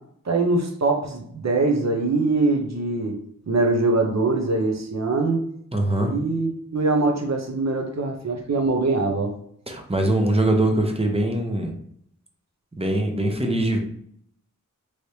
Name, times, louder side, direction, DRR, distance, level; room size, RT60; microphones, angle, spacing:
voice 1, 0.2-3.2 3.5-5.4 6.0-9.3, right 3 dB, 55° right, 2 dB, 0.8 m, -23 dB
voice 2, 5.7-6.1 9.7-11.7 12.8-13.8, right 1 dB, 20° right, 2 dB, 0.7 m, -22 dB
3.2 x 3.2 x 2.8 m, 0.67 s
wide cardioid pair, 85°, 32 cm